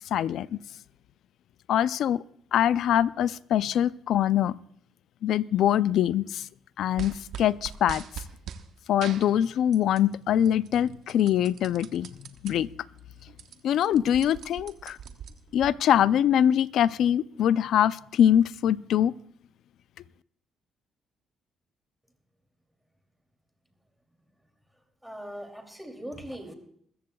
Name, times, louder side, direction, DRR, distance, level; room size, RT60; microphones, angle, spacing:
voice 1, 0.1-0.5 1.7-2.2 2.5-4.6 5.2-6.5 6.8-8.0 8.9-12.1 12.4-12.7 13.6-15.0 15.5-19.1, left 10 dB, 75° left, 17 dB, 0.4 m, -23 dB
sound 1, 7.0-8.6 9.0-10.1 10.5-12.5 13.0-13.1 13.3-15.7, right 8 dB, 75° right, 1.0 m, -41 dB
voice 2, 25.0-26.5, equal, ahead, 5 dB, 2.7 m, -40 dB
22.0 x 14.5 x 2.3 m, 0.65 s
cardioid pair, 90°, 0 cm